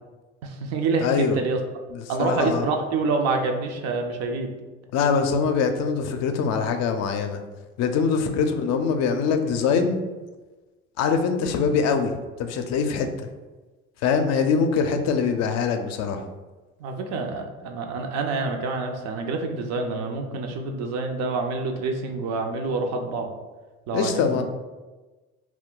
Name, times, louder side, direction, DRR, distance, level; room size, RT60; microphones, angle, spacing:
voice 1, 0.4-1.6 2.1-4.5 8.2-8.3 16.8-23.3 23.9-24.4, right 3 dB, 60° right, 4 dB, 0.5 m, -27 dB
voice 2, 1.0-1.4 1.9-2.6 4.9-7.4 7.8-10.0 11.0-12.1 12.4-13.3 14.0-16.3 23.9-24.4, left 5 dB, 60° left, 6 dB, 0.4 m, -23 dB
2.2 x 2.2 x 3.7 m, 1.2 s
supercardioid pair, 75°, 30 cm